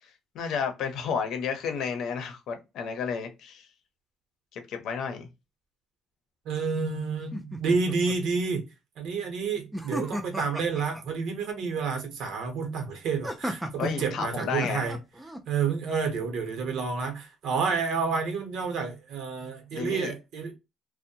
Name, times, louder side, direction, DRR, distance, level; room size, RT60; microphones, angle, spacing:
voice 1, 0.3-3.6 4.5-5.3 13.8-14.9 19.7-20.1, left 6 dB, 70° left, 0.7 m, -32 dB
voice 2, 6.4-8.6 9.0-15.0 15.5-20.5, right 5 dB, 75° right, 0.8 m, -29 dB
sound 1, 7.3-8.2 9.7-11.0 13.2-15.4, right 1 dB, 5° right, 0.4 m, -35 dB
2.6 x 2.1 x 2.7 m
cardioid pair, 155°, 0 cm